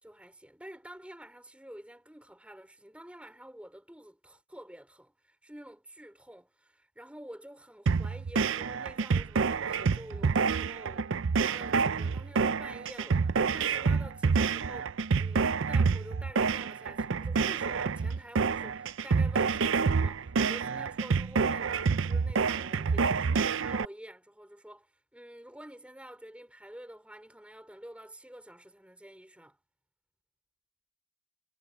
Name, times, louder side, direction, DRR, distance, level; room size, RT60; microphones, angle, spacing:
voice 1, 0.0-11.1 11.4-24.9 25.1-29.6, right 1 dB, 5° right, 3.2 m, -48 dB
sound 1, 7.9-23.9, right 5 dB, 60° right, 0.5 m, -28 dB
head